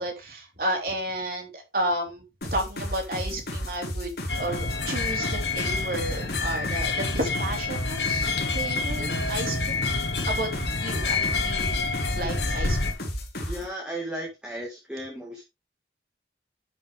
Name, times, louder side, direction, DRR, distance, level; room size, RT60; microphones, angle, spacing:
voice 1, 0.0-2.2 2.5-9.8 10.3-10.5 10.8-11.9 12.2-12.8, right 1 dB, 55° right, 3.6 m, -32 dB
sound 1, 2.4-13.7, equal, 65° left, 4.0 m, -33 dB
sound 2, 4.3-12.9, left 4 dB, 80° left, 1.3 m, -28 dB
voice 2, 13.4-15.4, right 1 dB, 5° right, 2.0 m, -35 dB
11.5 x 6.0 x 3.5 m
head